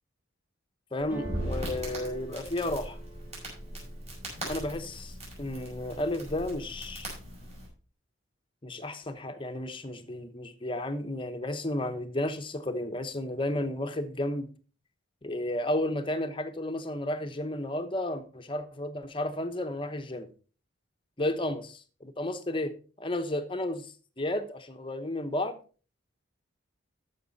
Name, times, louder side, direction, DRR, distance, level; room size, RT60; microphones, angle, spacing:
voice 1, 0.9-3.0 4.5-7.1 8.6-14.5 15.2-20.3 21.2-25.6, left 1 dB, 25° left, 0.9 m, -33 dB
Crackle, 1.0-7.7, right 1 dB, 30° right, 5.5 m, -39 dB
sound 1, 1.1-5.0 5.4-6.0 6.3-7.1, right 2 dB, 10° right, 2.3 m, -46 dB
13.5 x 6.0 x 4.1 m
head